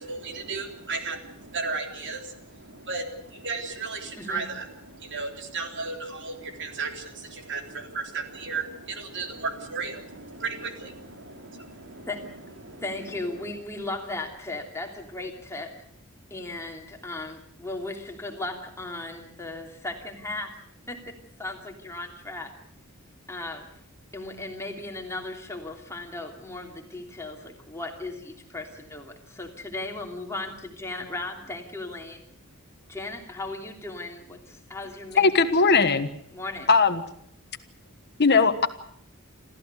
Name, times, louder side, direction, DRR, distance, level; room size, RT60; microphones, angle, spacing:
voice 1, 0.0-13.5, right 4 dB, 55° right, 4 dB, 3.5 m, -35 dB
voice 2, 4.1-4.4 12.1-12.4 12.8-15.8 16.3-20.6 20.9-22.5 23.3-23.7 24.1-32.3 32.9-35.3 36.3-36.7, left 2 dB, 15° left, 2 dB, 3.0 m, -36 dB
voice 3, 35.2-36.1 36.7-37.0 38.2-38.7, left 4 dB, 50° left, 9 dB, 1.3 m, -19 dB
28.0 x 14.5 x 8.1 m, 0.69 s
head